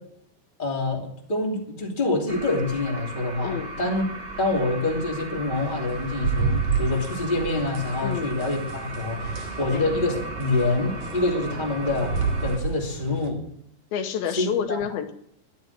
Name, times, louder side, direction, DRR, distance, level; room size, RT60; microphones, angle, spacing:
voice 1, 0.6-4.0 4.4-13.4 14.3-14.8, left 2 dB, 15° left, 0 dB, 2.4 m, -26 dB
sound 1, 2.3-12.6, right 2 dB, 30° right, 1.2 m, -36 dB
sound 2, 5.6-13.3, right 5 dB, 50° right, 2.6 m, -31 dB
voice 2, 8.0-8.3 9.7-9.9 13.9-15.1, left 8 dB, 80° left, 7 dB, 2.8 m, -28 dB
12.0 x 10.5 x 9.2 m, 0.73 s
omnidirectional pair, 4.4 m